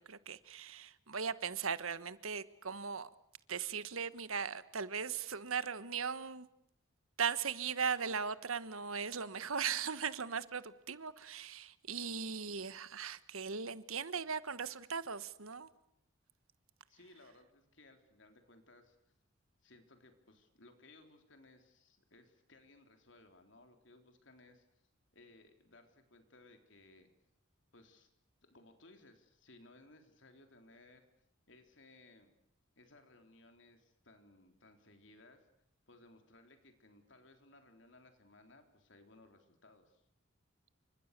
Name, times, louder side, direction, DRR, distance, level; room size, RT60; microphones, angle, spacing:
voice 1, 0.0-3.1 3.5-6.5 7.2-15.7, right 6 dB, 85° right, 1.4 m, -38 dB
voice 2, 16.9-19.0 19.6-24.7 25.1-27.1 27.7-28.1 28.4-31.1 31.5-32.3 32.8-35.5 35.9-40.0, left 2 dB, 60° left, 3.7 m, -61 dB
29.0 x 25.5 x 6.8 m
head